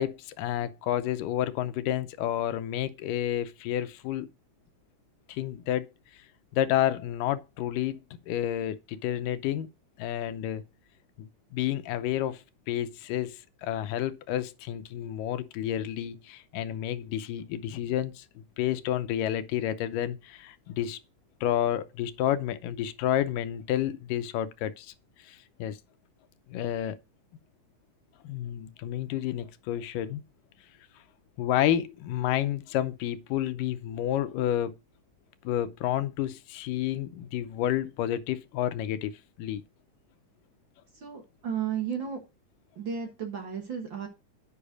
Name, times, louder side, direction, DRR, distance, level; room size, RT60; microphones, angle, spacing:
voice 1, 0.0-4.3 5.3-5.9 6.5-8.0 8.3-9.7 10.0-10.6 11.2-21.0 21.4-24.9 25.2-25.8 26.5-27.0 28.2-30.2 31.4-34.7 35.4-39.1 39.4-39.6, left 11 dB, 90° left, 2.4 m, -30 dB
voice 2, 41.0-42.2 42.8-44.1, right 7 dB, 50° right, 1.6 m, -33 dB
8.3 x 5.5 x 5.0 m
omnidirectional pair, 3.7 m